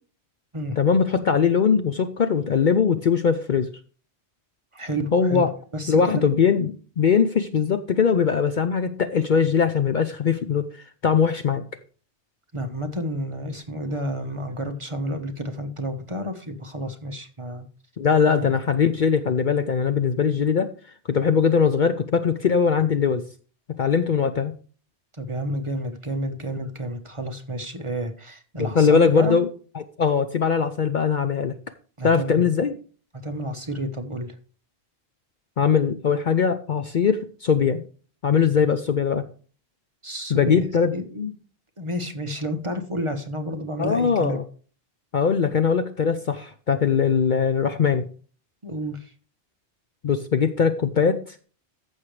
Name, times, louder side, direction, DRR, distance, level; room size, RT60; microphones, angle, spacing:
voice 1, 0.8-3.7 5.1-5.5 5.9-11.6 18.0-20.7 21.1-23.2 23.8-24.5 28.6-29.5 29.7-31.5 32.0-32.7 35.6-37.8 38.2-39.2 40.3-40.9 43.8-44.4 45.1-48.0 50.0-51.3, left 6 dB, 50° left, 9 dB, 0.7 m, -21 dB
voice 2, 4.7-5.5 5.7-6.2 12.5-17.7 18.3-18.5 25.1-29.4 32.0-32.5 33.2-34.4 40.0-41.3 41.8-44.4 48.6-49.1, equal, 30° right, 5 dB, 1.2 m, -30 dB
14.5 x 6.4 x 3.2 m, 0.40 s
omnidirectional pair, 1.1 m